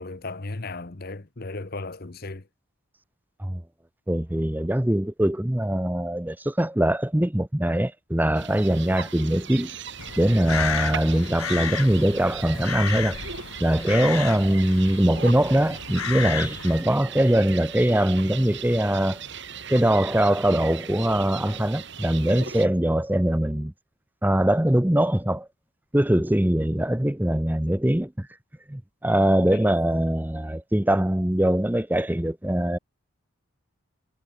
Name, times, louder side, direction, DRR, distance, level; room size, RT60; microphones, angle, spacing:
voice 1, 0.0-2.4 29.5-29.6, left 3 dB, 45° left, 1.0 m, -35 dB
voice 2, 4.1-9.7 10.2-13.2 13.6-19.2 19.7-23.7 24.2-25.5 25.9-28.3 28.7-32.8, right 1 dB, 10° right, 0.6 m, -22 dB
sound 1, 8.3-22.7, right 7 dB, 55° right, 6.0 m, -38 dB
Crow, 10.0-16.8, left 8 dB, 75° left, 1.0 m, -33 dB
head